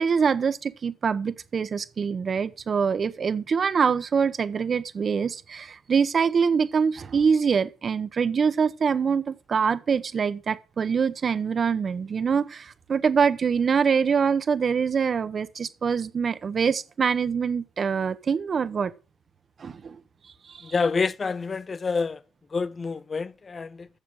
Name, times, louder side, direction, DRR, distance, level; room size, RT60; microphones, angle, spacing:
voice 1, 0.0-18.9 19.6-20.0 20.5-20.7, right 6 dB, 45° right, 1.4 m, -24 dB
voice 2, 20.6-22.2 22.5-23.9, left 4 dB, 35° left, 0.5 m, -27 dB
14.0 x 7.1 x 6.5 m
supercardioid pair, 60°, 0 cm